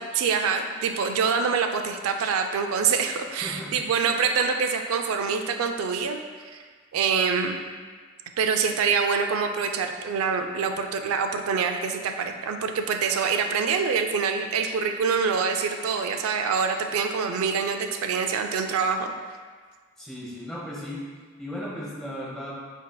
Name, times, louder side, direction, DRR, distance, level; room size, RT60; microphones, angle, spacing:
voice 1, 0.0-6.2 6.5-6.6 6.9-7.6 8.4-19.1, right 5 dB, 85° right, 6 dB, 0.3 m, -25 dB
voice 2, 3.3-3.8 20.0-21.0 21.4-22.5, equal, ahead, -7 dB, 1.0 m, -36 dB
8.1 x 2.8 x 2.2 m, 1.5 s
head